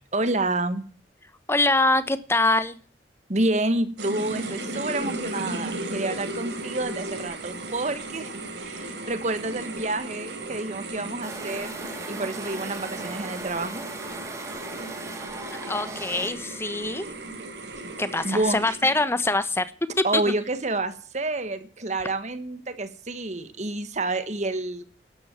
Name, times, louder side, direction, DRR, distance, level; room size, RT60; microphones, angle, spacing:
voice 1, 0.1-0.8 3.3-8.3 8.6-11.7 12.1-13.8 18.2-18.9 20.0-24.8, right 2 dB, 40° right, 11 dB, 1.5 m, -28 dB
voice 2, 1.5-2.8 15.7-17.1 18.0-19.7 20.0-20.2, left 2 dB, 15° left, 14 dB, 1.1 m, -24 dB
sound 1, 4.0-19.1, right 2 dB, 85° right, 4.0 m, -36 dB
sound 2, 11.2-16.3, right 2 dB, 20° right, 2.2 m, -38 dB
12.5 x 9.9 x 8.9 m, 0.42 s
head